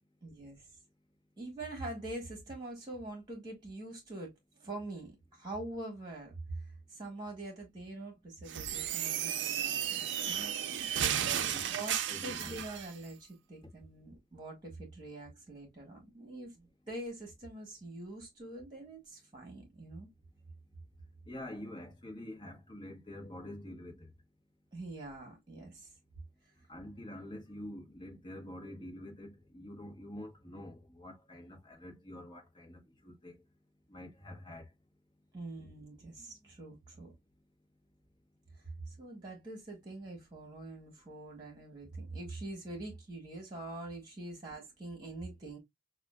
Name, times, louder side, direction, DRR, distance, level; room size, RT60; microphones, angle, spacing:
voice 1, 0.2-0.7 1.4-6.3 6.9-10.6 11.7-12.0 12.2-20.1 24.7-25.9 35.3-37.1 38.5-45.6, right 2 dB, 25° right, 1.5 m, -44 dB
sound 1, 8.5-12.9, right 9 dB, 65° right, 0.5 m, -34 dB
voice 2, 11.2-11.7 12.1-12.6 13.6-13.7 21.3-24.1 26.7-33.4 33.9-34.7, left 1 dB, 25° left, 1.1 m, -46 dB
5.8 x 2.4 x 2.3 m
head